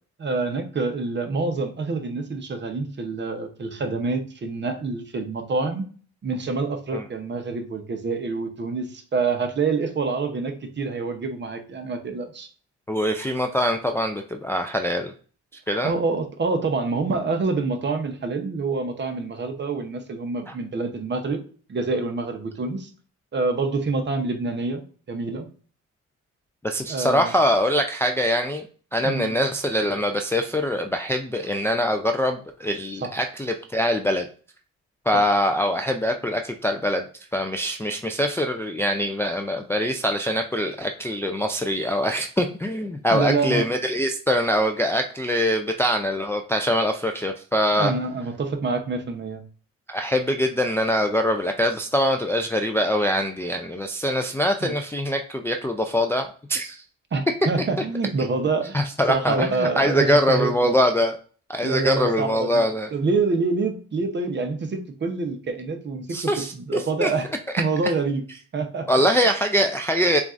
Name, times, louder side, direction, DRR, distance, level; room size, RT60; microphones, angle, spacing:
voice 1, 0.2-5.8 6.2-12.5 15.8-21.4 21.7-22.9 23.3-24.8 25.1-25.5 26.9-27.3 29.0-29.3 33.0-33.1 35.1-35.2 43.1-43.7 47.8-49.4 54.6-54.7 57.1-58.8 59.1-60.7 61.6-62.6 62.9-67.3 67.6-68.2 68.5-68.9, right 3 dB, 35° right, 6 dB, 0.8 m, -26 dB
voice 2, 12.9-15.1 15.7-15.9 20.5-20.6 26.6-28.6 28.9-34.2 35.1-37.1 37.3-47.9 49.9-56.8 58.7-61.2 61.5-62.9 66.1-67.1 68.9-70.2, equal, 10° left, 4 dB, 0.3 m, -23 dB
7.0 x 2.4 x 2.5 m, 0.41 s
cardioid pair, 90°, 30 cm